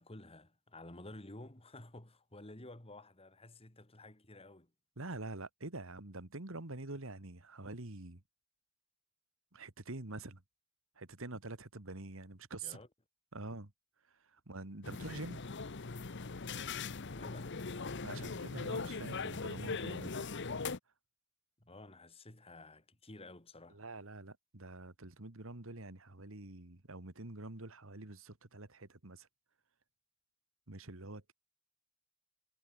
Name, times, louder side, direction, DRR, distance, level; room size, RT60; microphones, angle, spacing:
voice 1, 0.0-4.7 12.6-12.9 17.1-17.5 21.6-23.8, left 2 dB, 25° left, 2.4 m, -52 dB
voice 2, 5.0-8.2 9.5-10.4 11.0-12.8 13.3-13.7 14.1-15.4 18.0-20.3 23.7-29.3 30.7-31.3, right 2 dB, 65° right, 2.0 m, -46 dB
sound 1, 14.8-20.8, left 4 dB, 55° left, 1.0 m, -40 dB
head